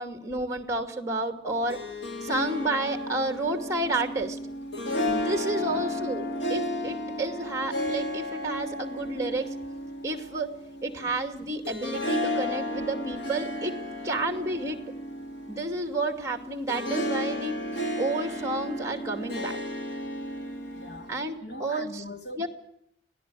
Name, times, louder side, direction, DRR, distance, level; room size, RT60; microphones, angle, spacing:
voice 1, 0.0-1.8 2.2-4.4 5.1-9.5 10.0-10.5 10.8-13.7 14.0-14.8 15.5-17.5 18.0-19.6 21.1-22.0 22.4-22.5, right 2 dB, 15° right, 2.4 m, -30 dB
Harp, 1.5-21.3, left 1 dB, 85° left, 2.9 m, -33 dB
voice 2, 5.6-5.9 11.0-11.1 20.7-22.5, left 1 dB, 65° left, 3.0 m, -42 dB
26.0 x 17.5 x 6.3 m
head